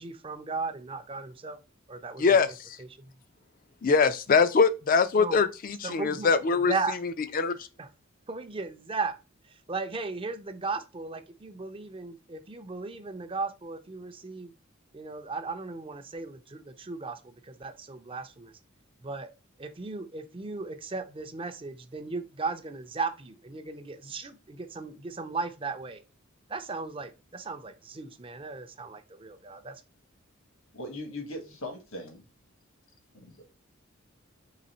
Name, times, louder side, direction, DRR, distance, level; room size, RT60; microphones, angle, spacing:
voice 1, 0.0-1.6 1.9-3.1 5.2-5.4 5.8-6.3 6.7-7.0 7.8-7.9 8.3-9.2 9.4-14.5 14.9-18.5 19.0-19.3 19.6-26.0 26.5-29.8, right 4 dB, 25° right, 0.5 m, -36 dB
voice 2, 2.2-2.5 3.8-6.7 7.3-7.5, left 5 dB, 40° left, 0.4 m, -22 dB
voice 3, 30.7-32.2 33.1-33.4, left 1 dB, 75° left, 1.3 m, -39 dB
4.0 x 3.1 x 4.2 m
head